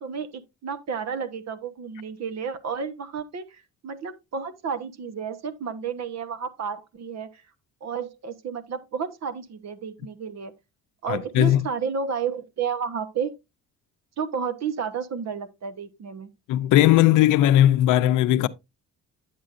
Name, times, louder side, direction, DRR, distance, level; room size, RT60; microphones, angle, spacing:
voice 1, 0.0-7.4 7.8-10.5 11.0-13.3 14.2-16.3, right 6 dB, 60° right, 1.0 m, -31 dB
voice 2, 11.1-11.7 16.5-18.5, left 13 dB, 85° left, 0.6 m, -18 dB
10.0 x 7.5 x 2.5 m
cardioid pair, 90°, 30 cm